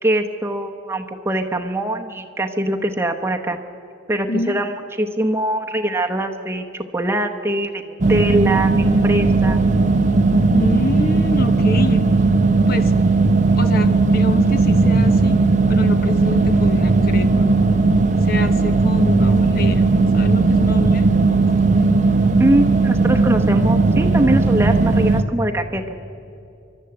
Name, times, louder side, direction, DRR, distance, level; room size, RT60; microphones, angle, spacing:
voice 1, 0.0-3.6 4.1-4.7 5.0-9.6 22.4-26.0, right 1 dB, 15° right, 3 dB, 0.9 m, -22 dB
voice 2, 4.3-4.6 10.5-12.1 12.7-12.9 13.6-15.4 15.7-17.5 18.2-19.9 20.1-21.1, left 2 dB, 50° left, 9 dB, 1.1 m, -27 dB
sound 1, 8.0-25.2, right 3 dB, 40° right, 0.7 m, -16 dB
29.0 x 12.5 x 7.8 m, 2.7 s
head